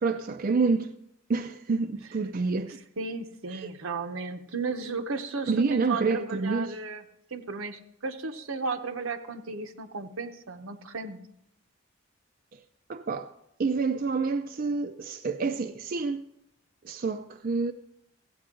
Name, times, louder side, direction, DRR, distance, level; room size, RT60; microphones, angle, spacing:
voice 1, 0.0-0.9 1.3-2.8 3.5-3.7 5.5-6.8 12.9-13.3 13.6-16.3 16.8-17.7, right 4 dB, 45° right, 0.4 m, -28 dB
voice 2, 3.0-7.0 7.3-11.2, right 4 dB, 80° right, 0.9 m, -34 dB
15.0 x 8.7 x 3.7 m
head